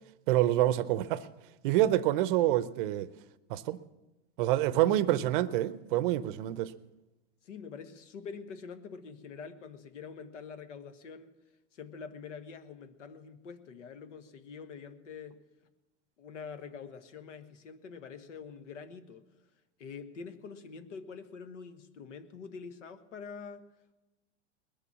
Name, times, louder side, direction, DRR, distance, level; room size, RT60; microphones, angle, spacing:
voice 1, 0.3-1.3 1.6-3.1 3.5-3.8 4.4-6.7, right 14 dB, 45° right, 16 dB, 0.6 m, -27 dB
voice 2, 4.6-5.3 7.4-11.3 11.7-15.4 16.2-19.2 19.8-23.7, left 5 dB, 80° left, 9 dB, 1.4 m, -45 dB
20.5 x 7.0 x 7.3 m, 1.0 s
hypercardioid pair, 145°, 36 cm